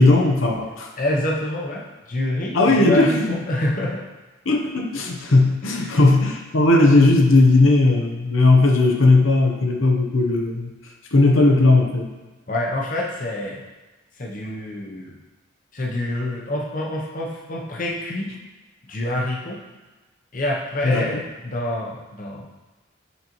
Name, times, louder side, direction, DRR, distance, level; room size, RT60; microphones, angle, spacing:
voice 1, 0.0-0.9 2.5-3.4 4.5-10.7 11.1-12.1 20.8-21.2, left 2 dB, 85° left, 2 dB, 0.8 m, -17 dB
voice 2, 1.0-4.0 5.8-6.0 12.5-13.6 14.2-15.2 15.7-18.3 18.9-19.6 20.3-22.5, left 1 dB, 40° left, -2 dB, 0.7 m, -27 dB
8.1 x 4.0 x 3.0 m, 1.2 s
head